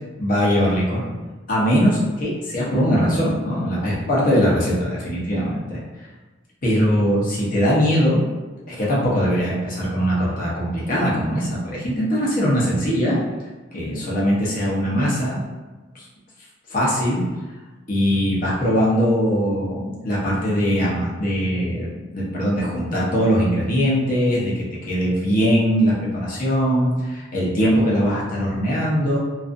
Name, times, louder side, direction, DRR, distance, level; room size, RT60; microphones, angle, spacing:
voice 1, 0.2-1.1 1.5-5.8 6.6-8.2 8.7-13.2 13.7-15.4 15.9-16.0 16.7-17.2 17.9-29.2, equal, 45° left, -6 dB, 0.7 m, -21 dB
2.4 x 2.4 x 2.5 m, 1.2 s
head